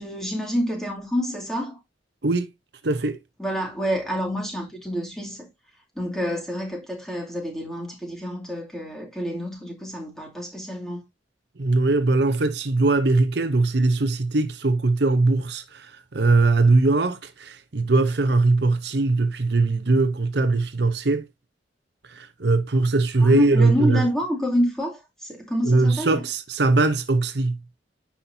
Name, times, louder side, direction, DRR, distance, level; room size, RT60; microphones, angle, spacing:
voice 1, 0.0-1.8 3.4-5.5 5.9-11.0 23.2-26.2, equal, 5° left, 2.5 m, -28 dB
voice 2, 2.8-3.2 11.6-21.3 22.1-24.1 25.6-27.6, right 3 dB, 60° right, 0.8 m, -21 dB
9.9 x 5.8 x 2.7 m
head